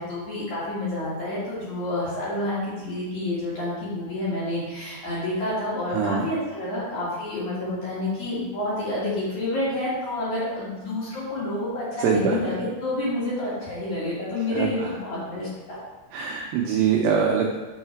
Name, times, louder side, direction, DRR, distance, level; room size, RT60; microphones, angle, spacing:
voice 1, 0.0-15.8, left 1 dB, 55° left, -8 dB, 2.5 m, -29 dB
voice 2, 5.9-6.3 12.0-12.6 14.5-14.9 16.1-17.6, right 6 dB, 85° right, 0 dB, 2.4 m, -23 dB
6.5 x 6.4 x 4.5 m, 1.2 s
omnidirectional pair, 5.6 m